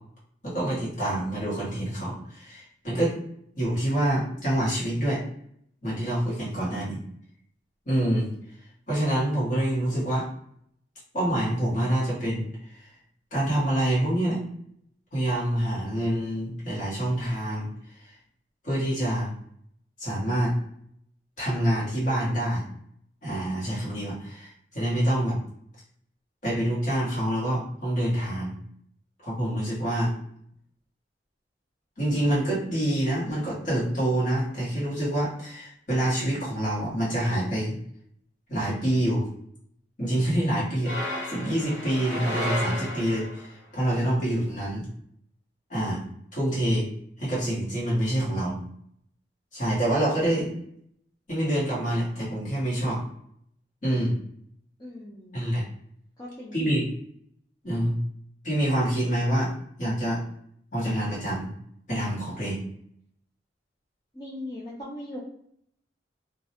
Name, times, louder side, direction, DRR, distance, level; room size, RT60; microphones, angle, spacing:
voice 1, 0.4-3.2 3.6-5.2 5.8-7.0 7.9-8.3 8.9-10.3 11.1-12.5 12.7-12.9 13.3-14.4 15.1-17.7 18.0-18.1 18.6-19.3 20.0-20.5 21.4-22.6 23.2-25.4 26.4-28.6 29.2-30.1 32.0-37.8 38.5-39.2 40.0-44.9 45.7-46.0 46.3-46.9 47.2-48.6 49.5-50.5 51.3-53.0 53.8-54.2 55.3-55.6 56.5-56.8 57.6-58.0 58.4-59.5 59.8-60.2 60.7-61.5 61.9-62.6, right 1 dB, 45° left, -7 dB, 1.1 m, -26 dB
sound 1, 40.8-43.5, equal, 90° left, 0.8 m, -32 dB
voice 2, 54.8-55.4 56.2-56.8 64.1-65.2, left 1 dB, 20° left, -7 dB, 0.4 m, -39 dB
2.4 x 2.0 x 2.8 m, 0.68 s
head